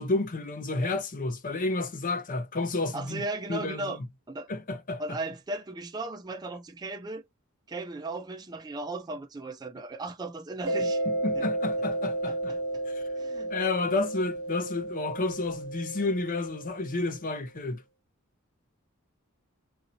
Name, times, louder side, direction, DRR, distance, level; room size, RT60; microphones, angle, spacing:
voice 1, 0.0-3.2 3.5-4.0 4.5-5.2 11.1-12.6 12.9-13.0 13.5-17.8, left 3 dB, 40° left, 0.6 m, -31 dB
voice 2, 2.9-4.0 4.3-4.5 5.0-7.2 7.7-11.0 11.3-11.4 12.5-12.6 13.2-13.5, right 2 dB, 20° right, 0.4 m, -36 dB
Mallet percussion, 10.7-17.0, right 1 dB, 75° right, 0.8 m, -32 dB
3.9 x 2.6 x 2.7 m
head